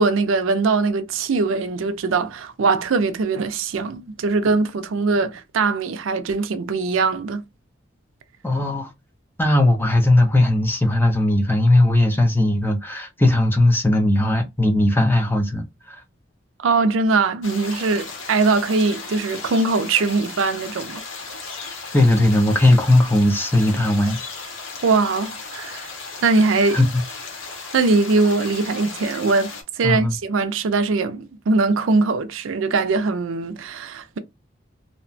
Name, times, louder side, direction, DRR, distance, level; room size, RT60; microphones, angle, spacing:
voice 1, 0.0-7.4 16.6-21.0 24.8-25.9 26.2-26.8 27.7-29.5 29.8-34.2, right 3 dB, 90° right, 0.4 m, -21 dB
voice 2, 8.4-8.9 9.4-16.0 21.9-24.2 26.7-27.0 29.8-30.2, left 1 dB, 10° left, 0.5 m, -18 dB
sound 1, 17.4-29.6, left 4 dB, 80° left, 0.9 m, -36 dB
2.8 x 2.1 x 2.5 m
head